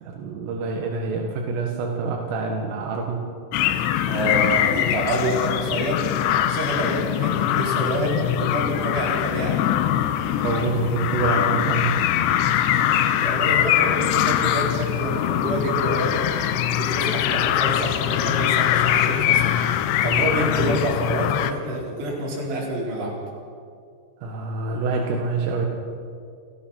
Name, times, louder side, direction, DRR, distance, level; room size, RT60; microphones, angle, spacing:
voice 1, 0.0-3.2 10.4-12.0 24.2-25.7, right 3 dB, 85° right, 0 dB, 4.2 m, -26 dB
sound 1, 3.5-21.5, left 11 dB, 80° left, 2.8 m, -22 dB
voice 2, 3.7-6.0 6.5-9.6 12.8-23.2, right 1 dB, 60° right, -4 dB, 6.3 m, -28 dB
29.5 x 16.0 x 5.8 m, 2.4 s
omnidirectional pair, 5.7 m